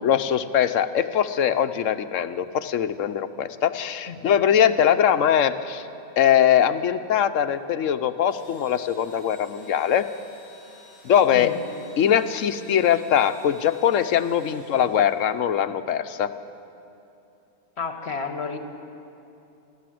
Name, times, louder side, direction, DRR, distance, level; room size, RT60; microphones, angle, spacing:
voice 1, 0.0-5.8 6.2-10.0 11.0-11.5 12.0-16.3, left 9 dB, 80° left, 11 dB, 1.1 m, -21 dB
Engine / Drill, 8.2-15.5, left 1 dB, 60° right, 5.1 m, -52 dB
voice 2, 11.3-11.6 17.8-18.6, left 5 dB, 55° left, 6 dB, 1.8 m, -31 dB
29.0 x 12.0 x 7.7 m, 2.8 s
omnidirectional pair, 1.3 m